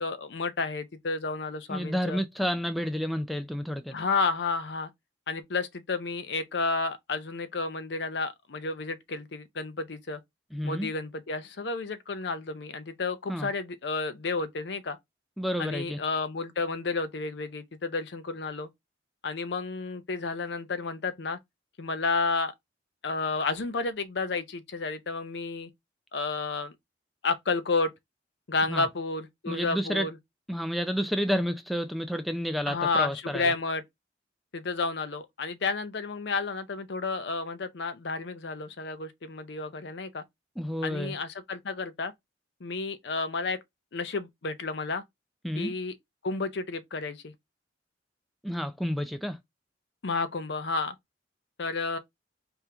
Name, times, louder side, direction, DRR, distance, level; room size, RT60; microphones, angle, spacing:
voice 1, 0.0-2.2 3.9-4.9 5.3-10.2 10.6-15.0 15.6-18.7 19.2-21.4 21.8-22.5 23.0-25.7 26.1-26.7 27.2-27.9 28.5-30.1 32.7-33.8 34.5-40.2 40.8-42.1 42.6-43.6 43.9-45.0 45.5-45.9 46.2-47.3 50.0-51.0 51.6-52.0, left 3 dB, 65° left, 0.6 m, -31 dB
voice 2, 1.7-4.0 10.5-10.9 13.3-13.5 15.4-16.0 28.7-28.9 29.5-30.1 30.5-33.5 40.6-41.1 45.4-45.7 48.4-49.4, equal, ahead, 0.3 m, -30 dB
3.5 x 2.9 x 3.3 m
head